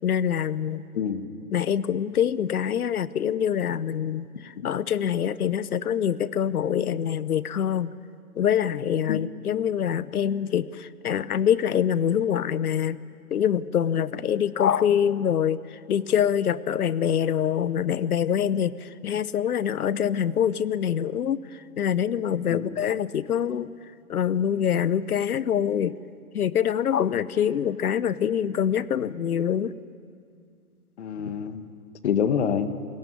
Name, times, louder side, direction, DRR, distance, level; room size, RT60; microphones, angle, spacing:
voice 1, 0.0-0.8 1.5-7.9 8.4-13.0 13.3-23.7 24.1-26.0 26.3-29.7, left 9 dB, 75° left, 17 dB, 1.0 m, -25 dB
voice 2, 0.9-1.3 4.6-4.7 9.1-9.2 22.5-22.8 31.0-31.7 32.0-32.7, left 7 dB, 45° left, 10 dB, 1.6 m, -26 dB
27.5 x 18.5 x 9.4 m, 2.3 s
hypercardioid pair, 155°, 45 cm